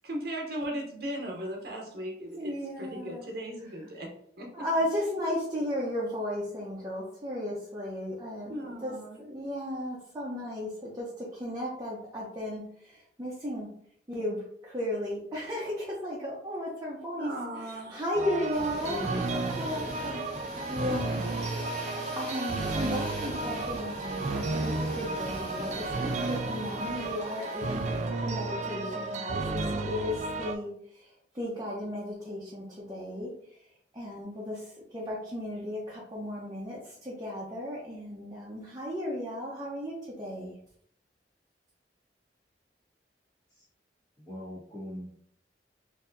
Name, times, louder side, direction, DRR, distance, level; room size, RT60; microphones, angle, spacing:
voice 1, 0.0-2.5 2.8-4.1 4.4-4.5 8.5-9.2 17.2-18.0 18.8-19.5, equal, 60° right, 0 dB, 0.8 m, -37 dB
voice 2, 2.4-3.3 3.6-3.8 4.5-13.7 14.1-19.0 19.3-20.2 20.7-33.3 33.9-40.5, left 1 dB, 20° right, -6 dB, 0.7 m, -35 dB
sound 1, 18.1-30.6, right 3 dB, 40° right, 0.3 m, -33 dB
sound 2, 18.5-28.1, equal, ahead, 1.3 m, -42 dB
voice 3, 44.2-45.3, equal, 20° left, -7 dB, 1.5 m, -42 dB
4.4 x 2.7 x 2.6 m, 0.67 s
head